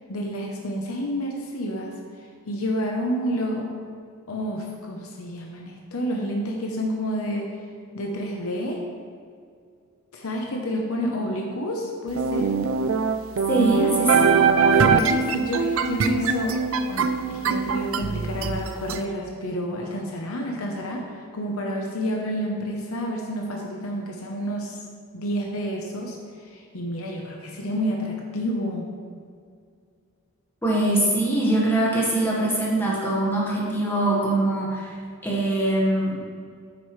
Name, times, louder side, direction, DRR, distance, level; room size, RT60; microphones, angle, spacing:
voice 1, 0.1-1.9 2.5-3.7 4.3-7.5 7.9-8.8 10.1-12.6 13.6-13.9 14.8-16.6 16.9-24.8 25.1-28.9, equal, 75° left, 0 dB, 0.9 m, -29 dB
sound 1, 12.2-19.0, right 5 dB, 65° right, 0.4 m, -22 dB
voice 2, 13.5-14.4 30.6-34.9 35.2-36.2, right 1 dB, 10° left, -5 dB, 1.5 m, -22 dB
9.1 x 6.9 x 3.2 m, 2.2 s
head